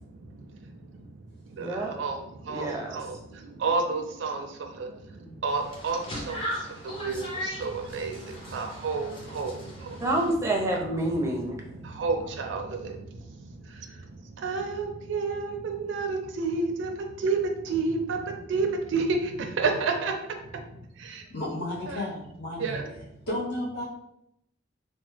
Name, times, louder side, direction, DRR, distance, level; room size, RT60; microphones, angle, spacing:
voice 1, 1.6-1.9 2.5-3.0 5.2-5.4 10.0-11.6, right 1 dB, 15° right, 0 dB, 0.5 m, -28 dB
voice 2, 2.5-3.1 3.6-4.4 5.4-6.0 6.3-6.4 6.8-7.2 7.6-8.2 8.5-9.5 12.0-12.9 14.4-16.9 17.2-17.4 17.7-18.2 18.5-19.2 19.6-20.1 21.9-22.0 22.6-22.8, right 4 dB, 70° right, 4 dB, 0.4 m, -29 dB
sound 1, 5.5-10.3, equal, 30° left, 0.7 m, -38 dB
voice 3, 21.3-22.6 23.3-23.8, left 1 dB, 60° left, -7 dB, 0.9 m, -32 dB
2.9 x 2.0 x 3.2 m, 0.79 s
head